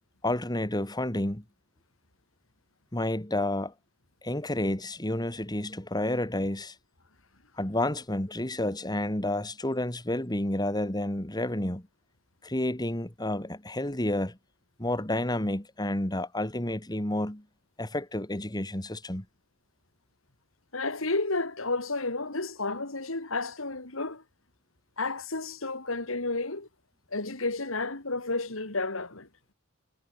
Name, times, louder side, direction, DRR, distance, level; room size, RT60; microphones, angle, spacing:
voice 1, 0.2-1.4 2.9-3.7 4.2-6.7 7.6-11.8 12.4-14.4 14.8-17.4 17.8-19.2, left 1 dB, 20° left, 2.7 m, -30 dB
voice 2, 20.7-24.2 25.0-26.7 27.1-29.3, left 3 dB, 85° left, 3.4 m, -31 dB
head